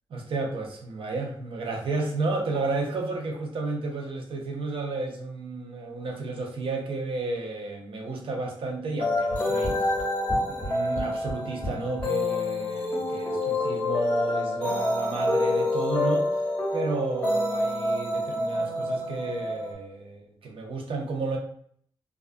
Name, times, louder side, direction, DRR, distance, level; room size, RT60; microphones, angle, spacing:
voice 1, 0.1-9.9 10.5-16.3 16.7-21.4, right 3 dB, 60° right, 2 dB, 0.6 m, -32 dB
sound 1, 9.0-19.7, left 2 dB, 15° left, 0.8 m, -27 dB
sound 2, 9.3-12.1, equal, 30° right, 1.2 m, -33 dB
2.3 x 2.3 x 2.4 m, 0.62 s
wide cardioid pair, 140°, 10 cm